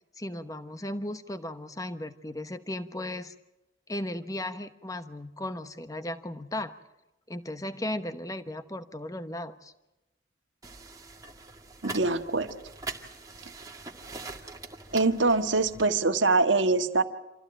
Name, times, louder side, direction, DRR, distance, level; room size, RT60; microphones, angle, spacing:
voice 1, 0.2-3.3 3.9-6.7 7.3-9.7, left 1 dB, 20° left, 10 dB, 1.0 m, -36 dB
sound 1, 10.6-15.9, right 3 dB, 20° right, 2.0 m, -43 dB
voice 2, 11.8-12.5 14.9-17.0, right 3 dB, 80° right, 7 dB, 1.6 m, -24 dB
27.5 x 15.0 x 9.0 m, 0.99 s
head